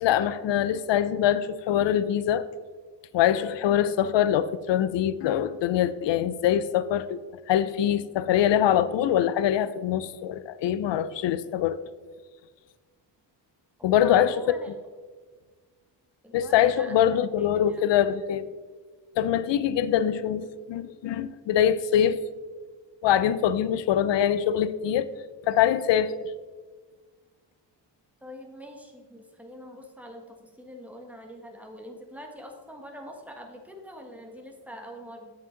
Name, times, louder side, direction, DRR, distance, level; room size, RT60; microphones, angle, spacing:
voice 1, 0.0-2.5 3.1-7.2 7.5-11.8 13.8-14.3 16.3-18.5 19.2-22.2 23.0-25.1 25.4-26.3, left 10 dB, 80° left, 0.6 m, -23 dB
voice 2, 13.8-14.7 16.2-17.0 17.4-17.9 28.2-35.3, equal, 5° right, 1.4 m, -44 dB
8.2 x 7.6 x 3.9 m
cardioid pair, 105°, 43 cm